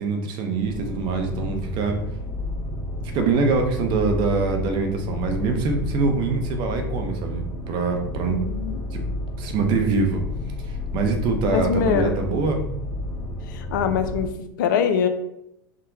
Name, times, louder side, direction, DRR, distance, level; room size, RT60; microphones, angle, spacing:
voice 1, 0.0-2.0 3.1-8.4 8.9-9.1 9.4-10.2 10.7-12.6, right 4 dB, 45° right, 4 dB, 0.6 m, -24 dB
sound 1, 0.6-14.3, left 1 dB, 40° left, 0.7 m, -31 dB
voice 2, 8.3-8.8 11.5-12.2 13.5-15.1, left 7 dB, 65° left, 8 dB, 0.4 m, -23 dB
3.7 x 2.1 x 2.6 m, 0.81 s
hypercardioid pair, 90°, 11 cm